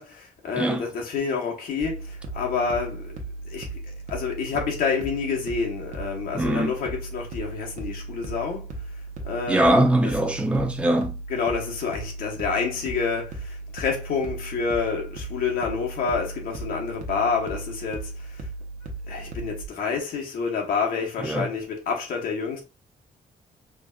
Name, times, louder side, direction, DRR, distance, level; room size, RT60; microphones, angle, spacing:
voice 1, 0.0-3.2 3.5-3.7 4.1-8.7 9.2-9.9 10.2-10.3 11.3-18.4 19.1-22.6, left 5 dB, 75° left, 1.2 m, -28 dB
voice 2, 0.6-0.9 6.3-6.7 9.5-11.1 21.2-21.5, right 1 dB, 5° right, 0.5 m, -22 dB
sound 1, 1.8-19.7, right 3 dB, 55° right, 0.9 m, -36 dB
5.0 x 2.5 x 2.3 m
cardioid pair, 175°, 15 cm